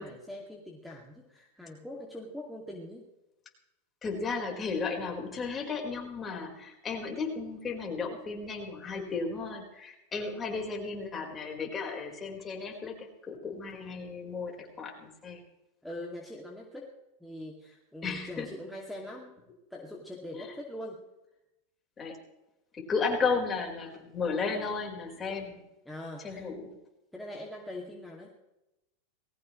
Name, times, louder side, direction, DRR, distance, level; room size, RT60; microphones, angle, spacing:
voice 1, 0.0-3.1 15.8-16.9 17.2-19.4 19.7-21.0 25.9-26.5 27.1-28.3, left 1 dB, ahead, -3 dB, 2.4 m, -42 dB
voice 2, 4.0-15.4 18.0-18.5 20.3-20.5 22.0-22.2 22.7-25.6 26.2-26.7, left 4 dB, 20° left, 0 dB, 4.6 m, -34 dB
20.5 x 17.5 x 3.2 m, 0.92 s
supercardioid pair, 130°, 0 cm